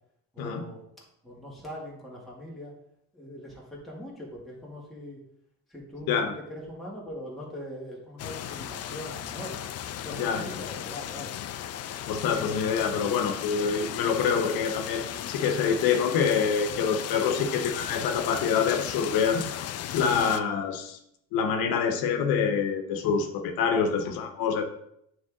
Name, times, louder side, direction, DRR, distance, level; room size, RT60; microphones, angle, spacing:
voice 1, 0.3-0.8 1.2-2.7 3.1-5.2 5.7-9.7 10.0-11.3 23.7-24.1, equal, ahead, -5 dB, 2.1 m, -41 dB
sound 1, 8.2-20.4, left 11 dB, 45° left, 0.4 m, -36 dB
voice 2, 10.2-10.5 12.1-19.4 19.9-21.0 21.3-24.6, left 6 dB, 85° left, 6 dB, 0.8 m, -26 dB
9.1 x 3.3 x 3.7 m, 0.74 s
cardioid pair, 125°, 35 cm